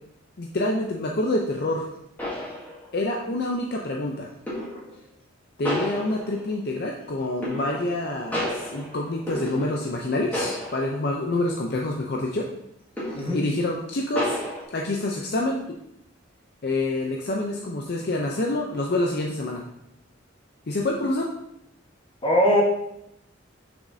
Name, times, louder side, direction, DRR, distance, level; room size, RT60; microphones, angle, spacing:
voice 1, 0.4-1.9 2.9-4.3 5.6-12.5 13.3-14.4 14.7-15.6 16.6-19.6 20.7-21.3, left 2 dB, 55° left, 0 dB, 0.6 m, -27 dB
sound 1, 1.6-1.7 2.2-3.1 4.5-4.9 5.6-6.6 7.4-8.0 8.3-10.0 10.3-11.1 11.5-11.6 13.0-13.5 14.1-14.6, equal, 10° left, 1.9 m, -31 dB
voice 2, 22.2-22.6, left 1 dB, 30° left, -3 dB, 1.3 m, -20 dB
6.3 x 6.2 x 2.7 m, 0.81 s
head